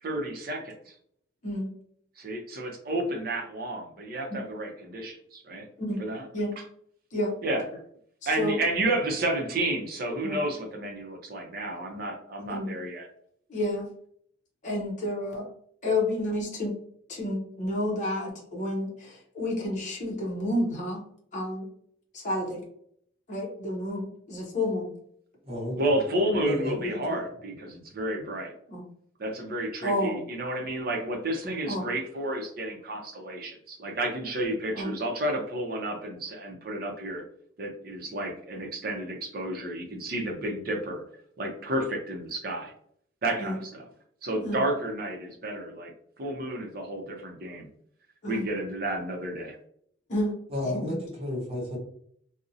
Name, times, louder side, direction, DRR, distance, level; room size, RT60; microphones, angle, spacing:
voice 1, 0.0-0.9 2.2-5.7 6.0-6.3 7.4-7.6 8.3-13.1 25.8-28.5 29.2-37.2 37.6-41.0 41.4-42.7 43.2-43.9 44.2-45.9 46.2-47.7 48.3-49.6, right 1 dB, 50° right, 2 dB, 0.5 m, -31 dB
voice 2, 8.2-8.6 10.2-10.4 12.5-12.7 13.5-13.9 14.6-15.5 15.8-16.8 17.1-21.0 21.3-21.7 22.1-22.6 23.3-24.9 28.7-28.8 29.8-30.2 31.7-31.8 34.7-34.9 43.4-43.6 44.4-44.6 48.2-48.4 50.1-50.4 50.6-51.0, left 1 dB, 40° left, -3 dB, 0.6 m, -30 dB
voice 3, 25.4-25.9 26.4-27.2 50.5-51.8, left 1 dB, 30° right, -4 dB, 0.9 m, -32 dB
2.5 x 2.0 x 2.6 m, 0.66 s
head